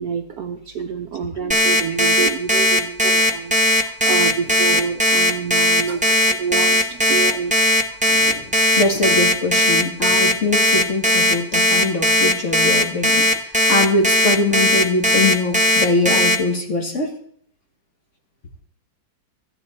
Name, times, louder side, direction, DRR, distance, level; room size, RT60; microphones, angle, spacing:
voice 1, 0.0-7.5, right 6 dB, 65° right, 6 dB, 1.0 m, -27 dB
Alarm, 1.5-16.3, left 1 dB, 5° right, 0.5 m, -17 dB
voice 2, 8.1-17.2, left 2 dB, 40° left, 2 dB, 1.7 m, -22 dB
13.5 x 10.0 x 4.3 m, 0.62 s
omnidirectional pair, 2.1 m